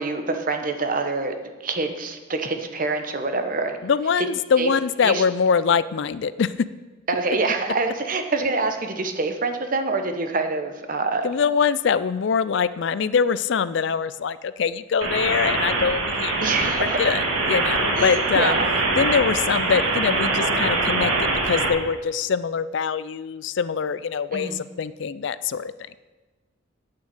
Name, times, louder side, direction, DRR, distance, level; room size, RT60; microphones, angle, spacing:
voice 1, 0.0-1.3 1.6-3.8 4.6-4.7 5.0-5.2 7.1-11.3 16.4-17.1 18.0-18.6 24.3-24.6, right 3 dB, 40° right, 6 dB, 1.1 m, -25 dB
voice 2, 3.8-6.7 11.2-18.6 19.0-26.0, left 6 dB, 60° left, 16 dB, 0.4 m, -23 dB
sound 1, 15.0-21.7, right 3 dB, 80° right, 2.0 m, -23 dB
8.9 x 7.2 x 8.8 m, 1.3 s
head